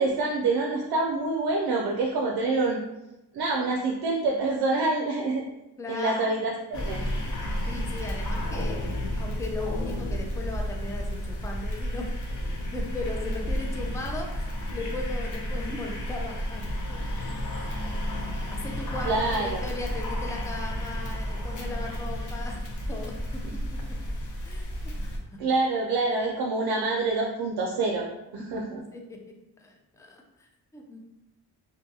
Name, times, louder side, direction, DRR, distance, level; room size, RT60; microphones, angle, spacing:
voice 1, 0.0-2.8 3.3-5.4 5.9-7.0 19.0-19.6 25.4-28.1 28.3-28.8, right 3 dB, 60° right, 0 dB, 0.5 m, -26 dB
voice 2, 5.8-6.4 7.7-12.1 12.7-17.7 18.5-22.6 22.9-23.4 23.7-23.8 24.4-25.4 27.9-28.0 28.5-28.6 28.9-29.2 29.6-31.0, left 2 dB, 10° left, 1 dB, 0.3 m, -38 dB
sound 1, 6.7-25.2, equal, 45° left, 0.7 m, -32 dB
2.7 x 2.2 x 2.7 m, 0.93 s
cardioid pair, 80°, 42 cm